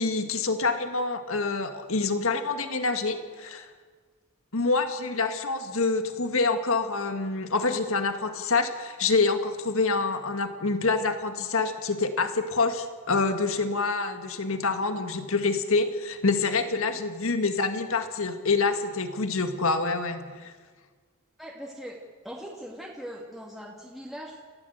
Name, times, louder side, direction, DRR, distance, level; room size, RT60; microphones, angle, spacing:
voice 1, 0.0-3.7 4.5-20.5, left 3 dB, 65° left, 8 dB, 1.8 m, -26 dB
voice 2, 21.4-22.0 22.2-24.5, equal, ahead, -4 dB, 2.6 m, -40 dB
29.0 x 15.5 x 8.1 m, 1.5 s
head